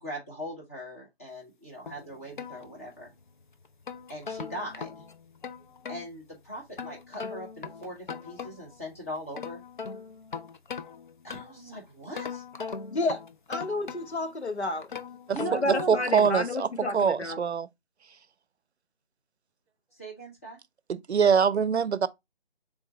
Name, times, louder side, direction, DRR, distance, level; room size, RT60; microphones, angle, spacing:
voice 1, 0.0-3.1 4.1-5.0 5.9-9.6 11.2-12.4 15.3-16.1 19.9-20.6, equal, 15° left, 0.8 m, -39 dB
sound 1, 1.9-3.2 3.6-6.1 6.8-8.8 9.2-11.7 12.1-14.3 14.8-16.6, left 5 dB, 50° left, 0.5 m, -40 dB
voice 2, 12.9-13.2 13.5-14.9 15.5-17.4, left 2 dB, 90° left, 1.1 m, -30 dB
voice 3, 15.7-16.7 16.9-17.7 20.9-22.1, right 6 dB, 90° right, 0.6 m, -23 dB
3.6 x 3.5 x 4.0 m
figure-of-eight pair, 160°, 32 cm